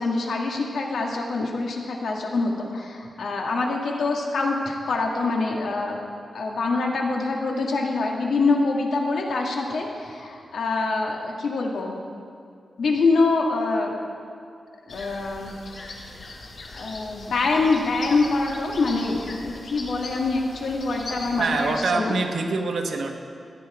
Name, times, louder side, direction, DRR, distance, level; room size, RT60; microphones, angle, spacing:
voice 1, 0.0-6.0 6.3-11.9 12.8-13.9 14.9-15.6 16.7-22.1, left 3 dB, 80° left, 0 dB, 1.7 m, -25 dB
sound 1, 14.9-21.8, left 2 dB, 55° left, 1.7 m, -40 dB
voice 2, 21.4-23.2, right 3 dB, 70° right, 3 dB, 1.2 m, -25 dB
14.5 x 9.7 x 4.9 m, 2.4 s
wide cardioid pair, 175°, 0 cm